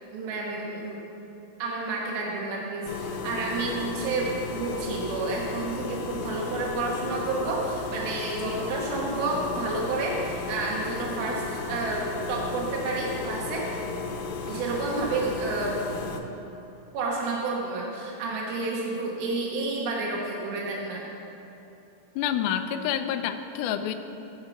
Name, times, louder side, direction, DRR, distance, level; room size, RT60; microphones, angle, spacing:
voice 1, 0.1-1.0 1.6-13.7 14.5-15.8 16.9-21.0, right 3 dB, 80° right, -2 dB, 3.2 m, -30 dB
sound 1, 2.9-16.2, left 4 dB, 70° left, 2.0 m, -34 dB
voice 2, 22.2-23.9, left 9 dB, 90° left, 7 dB, 1.7 m, -28 dB
15.5 x 5.7 x 7.0 m, 2.9 s
omnidirectional pair, 4.3 m